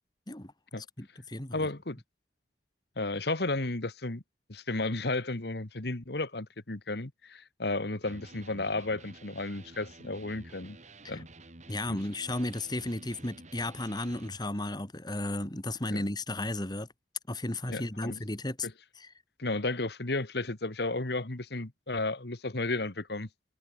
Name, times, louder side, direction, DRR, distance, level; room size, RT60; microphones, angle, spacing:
voice 1, 0.8-1.7 11.1-11.2 11.7-16.9 17.3-18.7 19.0-19.1, left 1 dB, 25° left, 2.3 m, -34 dB
voice 2, 1.5-2.0 3.0-4.2 4.5-10.8 11.1-11.3 11.9-12.0 15.9-16.0 17.7-18.2 18.6-18.7 19.4-23.3, left 2 dB, 65° left, 1.7 m, -33 dB
Electric guitar, 8.0-14.4, right 2 dB, 40° right, 4.3 m, -51 dB
head